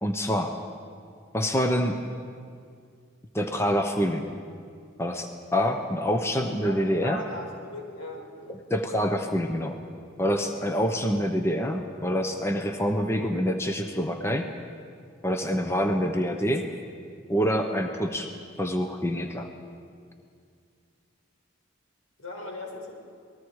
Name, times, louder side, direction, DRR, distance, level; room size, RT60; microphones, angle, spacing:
voice 1, 0.0-0.6 1.3-2.0 3.3-4.3 5.0-7.2 8.5-9.8 10.2-14.5 15.2-16.7 17.3-18.3 18.6-19.5, equal, 15° left, 5 dB, 0.9 m, -26 dB
voice 2, 6.6-8.6 10.5-10.6 22.2-22.9, left 1 dB, 90° left, 0 dB, 4.8 m, -39 dB
27.5 x 20.0 x 4.8 m, 2.2 s
head